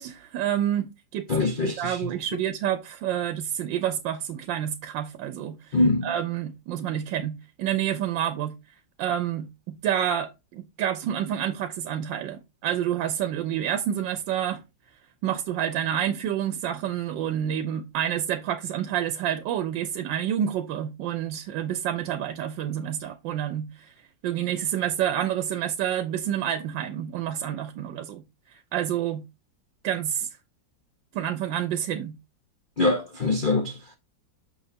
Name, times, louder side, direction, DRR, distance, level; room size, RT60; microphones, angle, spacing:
voice 1, 0.0-1.3 1.6-5.8 6.0-8.6 9.0-14.6 15.2-23.9 24.2-29.2 29.8-30.3 31.1-32.2, right 10 dB, 80° right, 1.3 m, -28 dB
voice 2, 1.3-2.1 5.7-6.1 32.8-34.0, left 2 dB, 75° left, 0.4 m, -24 dB
6.4 x 6.3 x 2.7 m
omnidirectional pair, 2.0 m